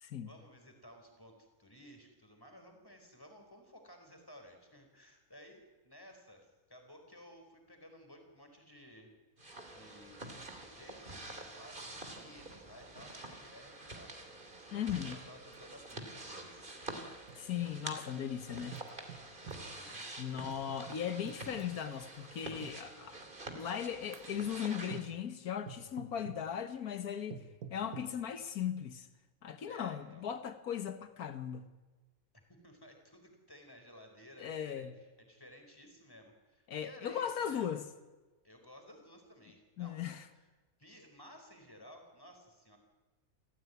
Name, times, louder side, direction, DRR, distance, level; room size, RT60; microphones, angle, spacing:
voice 1, 0.2-9.1 9.7-14.2 14.5-16.8 19.4-20.1 29.7-30.3 32.3-37.7 38.4-40.5 40.8-42.8, equal, 15° left, 4.6 m, -56 dB
sound 1, 9.4-25.0, right 2 dB, 35° right, 2.9 m, -47 dB
voice 2, 14.7-15.2 17.3-18.8 20.2-23.2 23.5-27.4 27.7-29.1 29.4-31.7 34.4-34.9 36.7-37.8 39.8-40.2, left 9 dB, 90° left, 1.7 m, -38 dB
sound 2, 15.5-15.6 15.9-16.0 16.9-18.0 18.7-19.7 20.5-21.8 22.6-22.8 23.6-23.8 24.1-24.5 24.9-25.2 25.7-26.5 27.3-28.2, right 7 dB, 80° right, 1.7 m, -49 dB
28.5 x 15.0 x 9.4 m
omnidirectional pair, 1.5 m